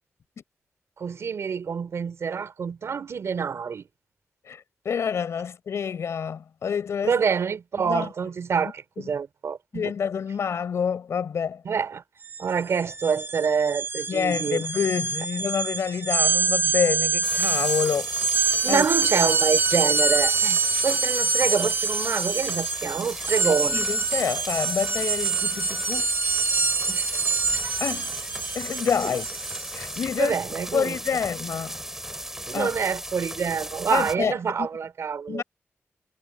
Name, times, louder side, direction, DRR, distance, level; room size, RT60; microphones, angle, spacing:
voice 1, 1.0-3.8 7.0-9.9 11.7-12.0 12.4-14.6 18.6-23.8 26.9-27.2 30.2-31.0 32.5-35.4, right 6 dB, 80° right, 3.7 m, -26 dB
voice 2, 4.5-7.2 7.8-8.1 8.6-9.1 9.7-11.6 14.1-18.1 18.7-18.9 23.4-26.1 27.8-28.2 28.5-29.3 29.7-30.4 30.7-31.8 32.5-32.7 33.9-34.7 35.3-35.4, left 7 dB, 85° left, 5.4 m, -28 dB
sound 1, 12.2-12.4 12.7-30.0, right 4 dB, 45° right, 0.7 m, -25 dB
sound 2, 17.2-34.2, right 1 dB, 10° right, 7.4 m, -37 dB
cardioid pair, 55°, 5 cm